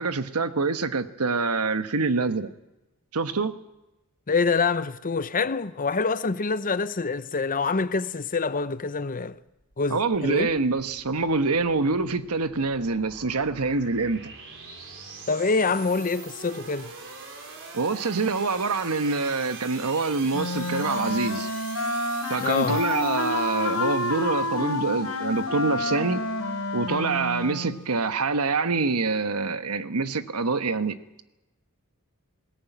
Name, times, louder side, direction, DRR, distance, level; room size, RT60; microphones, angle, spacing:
voice 1, 0.0-2.5 3.1-3.6 9.9-14.3 17.7-21.5 22.3-26.2 26.7-31.0, right 4 dB, 80° right, 1.2 m, -26 dB
voice 2, 4.3-9.4 9.8-10.5 15.3-16.9 22.4-22.8, left 4 dB, 40° left, 0.8 m, -26 dB
sound 1, 9.5-28.1, right 4 dB, 60° right, 4.2 m, -44 dB
Wind instrument woodwind instrument, 20.3-27.8, left 2 dB, 85° left, 2.8 m, -29 dB
20.5 x 17.5 x 9.2 m
head